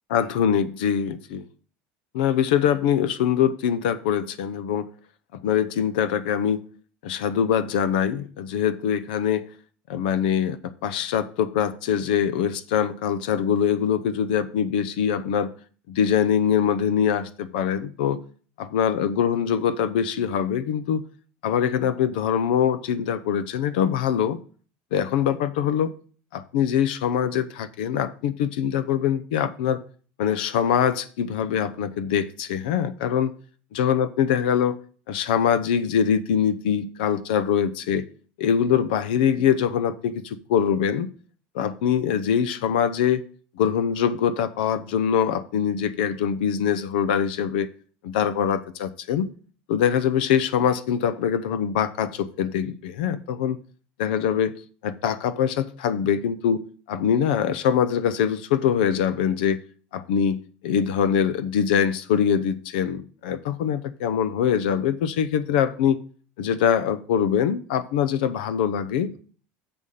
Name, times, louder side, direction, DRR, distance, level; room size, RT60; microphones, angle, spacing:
voice 1, 0.1-1.5 2.1-4.9 5.3-6.6 7.0-9.5 9.9-15.5 15.9-18.2 18.6-21.0 21.4-24.4 24.9-25.9 26.3-29.8 30.2-33.3 33.7-34.8 35.1-38.1 38.4-41.1 41.5-43.2 43.6-47.7 48.0-49.3 49.7-53.6 54.0-54.5 54.8-56.6 56.9-59.6 59.9-66.0 66.4-69.2, left 8 dB, 90° left, 0.7 m, -23 dB
7.0 x 5.6 x 6.5 m
supercardioid pair, 130°, 5 cm